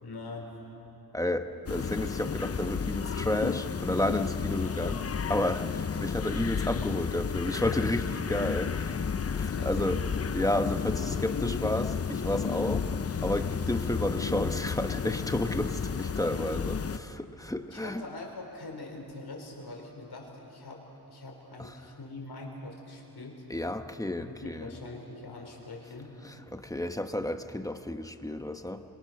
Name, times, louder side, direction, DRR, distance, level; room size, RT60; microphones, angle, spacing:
voice 1, 0.0-0.5 9.5-9.9 16.8-16.9 17.7-23.4 24.2-26.1, left 2 dB, 65° left, 0 dB, 4.8 m, -43 dB
voice 2, 1.1-10.0 10.3-18.0 21.6-21.7 23.5-24.7 26.2-28.8, left 1 dB, 10° left, 7 dB, 1.1 m, -32 dB
sound 1, 1.7-17.0, left 6 dB, 35° left, 0.6 m, -32 dB
27.0 x 25.5 x 6.5 m, 2.9 s
wide cardioid pair, 120°, 41 cm